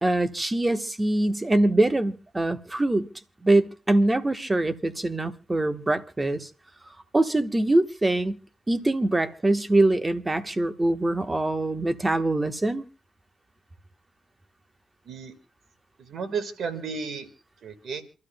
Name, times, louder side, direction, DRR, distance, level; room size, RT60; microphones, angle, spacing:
voice 1, 0.0-3.1 3.4-6.5 7.1-8.4 8.7-12.8, right 2 dB, 20° right, 1.2 m, -23 dB
voice 2, 16.0-17.3 17.6-18.0, right 5 dB, 70° right, 1.7 m, -33 dB
28.0 x 13.0 x 2.2 m
cardioid pair, 75°, 0 cm